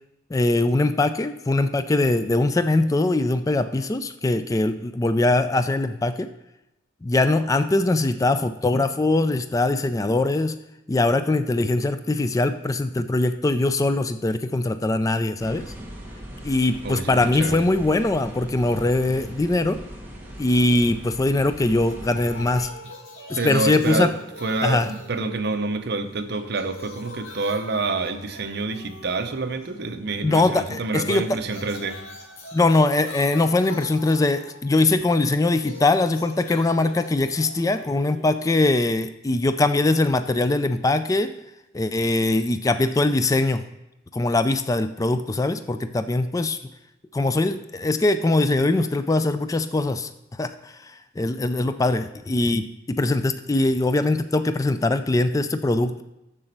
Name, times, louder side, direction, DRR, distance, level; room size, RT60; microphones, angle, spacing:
voice 1, 0.3-6.3 7.0-10.6 10.9-15.7 16.4-19.8 20.4-22.7 23.3-24.1 24.6-24.9 30.2-31.2 32.5-41.3 41.7-43.6 44.1-46.6 47.1-50.1 50.4-56.0, left 2 dB, 15° left, 0.3 m, -22 dB
sound 1, 15.4-22.6, equal, 10° right, 1.4 m, -40 dB
voice 2, 16.8-17.7 23.4-24.1 24.4-32.0, right 3 dB, 55° right, 0.7 m, -27 dB
sound 2, 21.9-25.9 26.2-29.9 30.9-38.9, left 1 dB, 80° left, 1.8 m, -42 dB
7.1 x 6.8 x 6.5 m
head